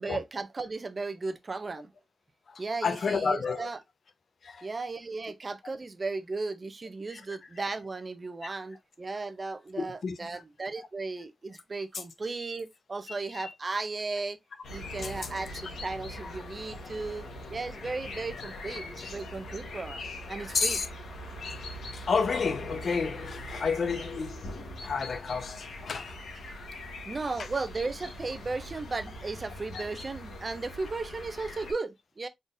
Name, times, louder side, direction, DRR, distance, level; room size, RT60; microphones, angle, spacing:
voice 1, 0.0-1.9 2.6-3.8 4.6-14.4 14.7-20.8 27.0-32.3, right 3 dB, 40° right, 0.6 m, -35 dB
voice 2, 2.5-3.7 4.4-4.7 7.1-7.4 8.4-8.5 9.4-10.4 10.8-10.9 11.9-12.0 13.1-13.5 15.0-15.3 16.2-16.3 16.7-16.9 19.0-19.1 20.5-20.9 21.4-26.2 29.7-29.8, left 5 dB, 65° left, 0.8 m, -32 dB
sound 1, 14.6-31.7, left 1 dB, 90° left, 1.3 m, -42 dB
3.9 x 3.8 x 2.5 m
cardioid pair, 70°, 0 cm